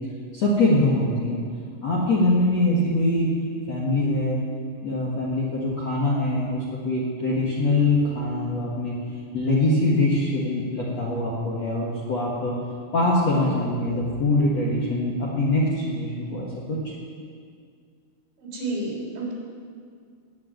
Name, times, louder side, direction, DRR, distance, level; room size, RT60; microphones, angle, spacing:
voice 1, 0.3-1.4 1.8-3.3 3.7-4.4 4.8-9.0 9.3-12.5 12.9-16.9, left 2 dB, 55° left, -5 dB, 1.8 m, -23 dB
voice 2, 18.4-19.3, right 2 dB, 70° right, -4 dB, 6.1 m, -30 dB
19.0 x 6.6 x 9.3 m, 2.1 s
omnidirectional pair, 5.6 m